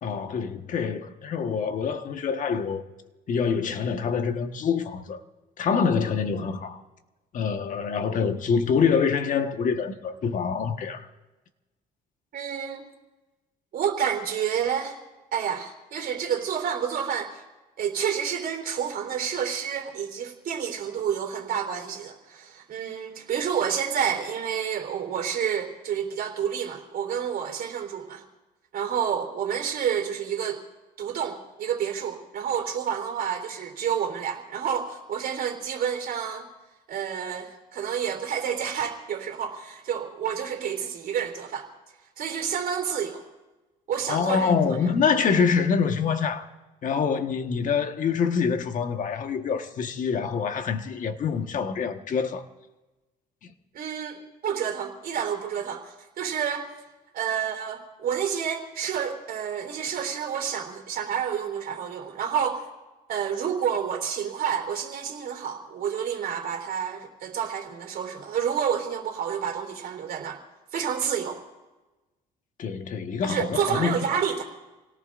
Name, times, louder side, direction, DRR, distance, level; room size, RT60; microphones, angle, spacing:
voice 1, 0.0-2.8 3.3-5.2 5.6-6.8 7.3-11.1 44.1-46.5 46.8-52.4 72.6-74.0, left 6 dB, 50° left, 1.4 m, -25 dB
voice 2, 12.3-12.9 13.7-15.0 15.3-17.4 17.8-28.2 28.7-30.6 31.0-36.5 36.9-41.7 42.2-43.2 43.9-44.8 53.7-56.7 57.1-62.6 63.1-70.4 70.7-71.4 73.2-74.5, right 8 dB, 60° right, 3.5 m, -29 dB
28.5 x 18.0 x 2.6 m
cardioid pair, 110°, 17 cm